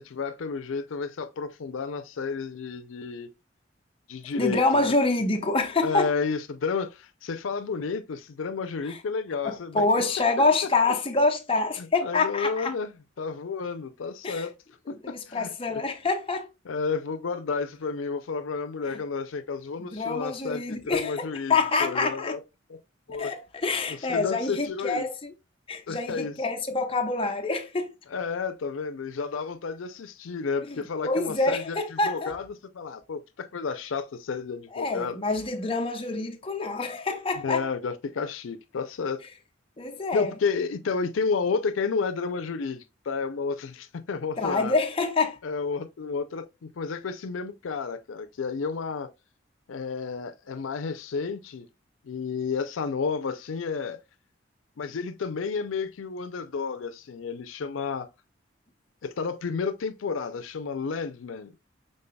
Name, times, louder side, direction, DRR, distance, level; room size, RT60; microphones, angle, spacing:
voice 1, 0.0-3.3 4.1-4.9 5.8-9.8 11.8-14.5 14.9-15.8 16.7-22.4 22.7-22.8 23.1-23.3 23.9-25.0 25.9-26.4 28.1-35.2 37.4-39.2 40.1-44.8 45.4-49.1 49.7-51.7 52.0-54.0 54.8-58.1 59.0-61.5, left 5 dB, 90° left, 0.5 m, -31 dB
voice 2, 4.3-6.1 8.9-9.0 9.4-12.7 14.2-14.5 14.9-16.5 18.9-19.0 19.8-22.4 23.2-25.3 25.7-27.9 30.7-30.8 31.0-32.4 34.7-37.6 39.8-40.3 44.4-45.4, left 3 dB, 30° left, 0.7 m, -26 dB
5.4 x 3.8 x 2.2 m
head